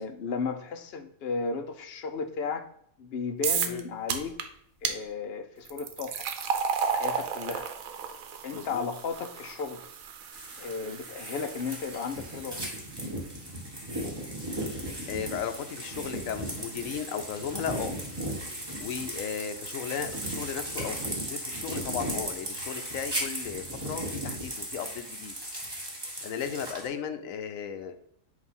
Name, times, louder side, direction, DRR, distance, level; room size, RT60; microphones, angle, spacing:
voice 1, 0.0-2.7 3.0-4.4 4.8-6.3 6.9-7.7 8.4-9.9 10.6-12.8, left 5 dB, 60° left, 8 dB, 0.7 m, -34 dB
sound 1, 3.4-3.8 4.1-4.4 4.8-5.0 5.7-12.8, right 6 dB, 85° right, 1.1 m, -33 dB
voice 2, 8.5-8.9 10.8-11.0 15.1-17.9 18.8-21.0 21.3-25.3 26.2-27.9, left 7 dB, 75° left, 9 dB, 1.1 m, -35 dB
sound 2, 10.3-26.9, right 1 dB, 20° right, 1.4 m, -36 dB
8.2 x 2.8 x 5.4 m, 0.68 s
omnidirectional pair, 1.4 m